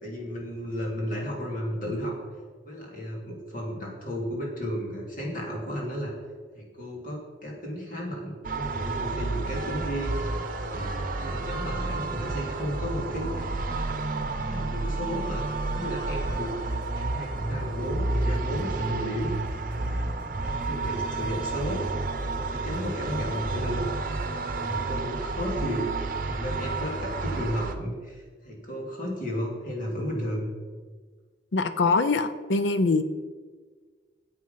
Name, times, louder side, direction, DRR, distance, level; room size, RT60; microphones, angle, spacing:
voice 1, 0.0-2.2 2.6-6.1 6.5-14.0 14.4-20.1 20.4-21.9 22.2-24.1 24.3-25.9 26.3-30.5, equal, 45° left, -2 dB, 2.8 m, -34 dB
sound 1, 8.4-27.7, right 3 dB, 50° right, 0.9 m, -30 dB
sound 2, 16.3-24.5, equal, 30° right, 1.7 m, -49 dB
voice 2, 31.5-33.0, left 3 dB, 70° left, 11 dB, 0.5 m, -23 dB
9.4 x 8.0 x 5.6 m, 1.5 s
head